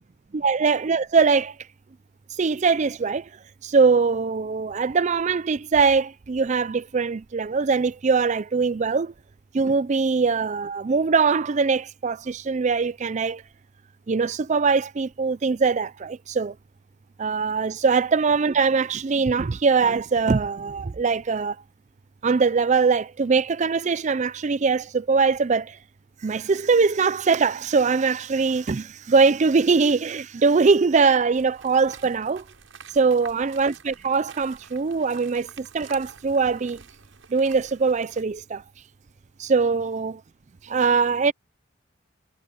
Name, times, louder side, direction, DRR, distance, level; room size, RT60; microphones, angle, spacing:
voice 1, 0.3-1.5 2.4-3.3 3.6-9.1 9.5-13.4 14.1-16.5 17.2-21.6 22.2-25.8 26.2-32.4 32.9-36.8 37.3-38.6 39.4-40.2 40.6-41.3, right 4 dB, 35° right, 0.4 m, -22 dB
sound 1, 31.3-38.2, right 6 dB, 80° right, 7.8 m, -48 dB
head